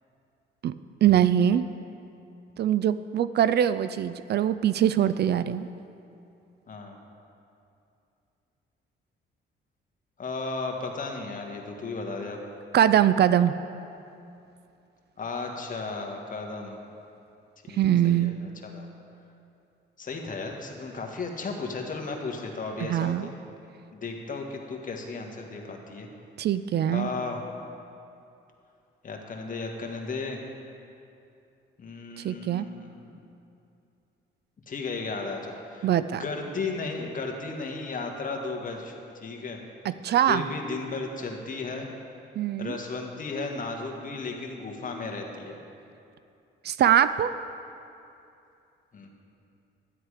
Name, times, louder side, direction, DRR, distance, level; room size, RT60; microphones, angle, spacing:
voice 1, 1.0-1.7 2.6-5.7 12.7-13.5 17.8-18.3 22.9-23.3 26.4-27.1 32.2-32.7 35.8-36.2 39.8-40.4 42.4-42.8 46.6-47.3, right 10 dB, 55° right, 14 dB, 0.4 m, -22 dB
voice 2, 10.2-12.4 15.2-16.8 17.6-18.9 20.0-23.3 23.9-26.1 26.9-27.4 29.0-30.4 31.8-33.1 34.7-35.9 36.2-39.6 40.3-41.9 42.6-45.6 48.9-49.1, left 3 dB, 40° left, 2 dB, 1.6 m, -35 dB
12.0 x 10.0 x 4.9 m, 2.7 s
cardioid pair, 90°, 20 cm